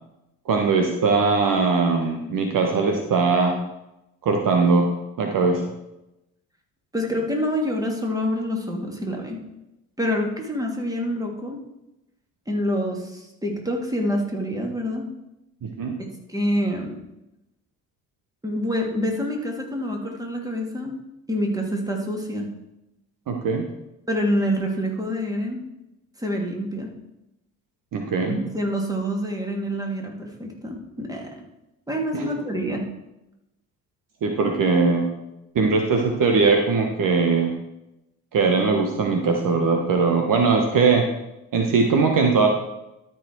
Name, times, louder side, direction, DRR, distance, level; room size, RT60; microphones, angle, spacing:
voice 1, 0.4-3.5 4.2-4.9 5.2-5.6 15.6-15.9 23.3-23.6 27.9-28.4 32.1-32.2 34.2-35.1 35.5-37.5 38.3-41.1 41.5-42.5, right 4 dB, 50° right, 3 dB, 1.3 m, -20 dB
voice 2, 6.9-9.4 10.0-11.6 12.5-15.1 16.3-17.0 18.4-21.0 21.3-22.5 24.1-25.6 26.2-26.9 28.3-31.3 31.9-32.8, equal, 10° right, 0 dB, 2.6 m, -26 dB
13.0 x 4.8 x 4.6 m, 0.91 s
hypercardioid pair, 55°, 43 cm